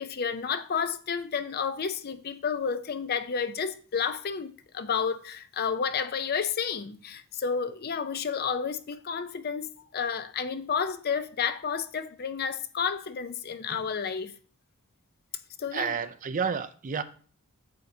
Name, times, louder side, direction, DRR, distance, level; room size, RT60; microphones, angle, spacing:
voice 1, 0.0-14.3 15.6-15.9, left 6 dB, 45° left, 0.5 m, -31 dB
voice 2, 15.7-17.0, right 6 dB, 35° right, 0.4 m, -30 dB
8.8 x 6.9 x 2.7 m
head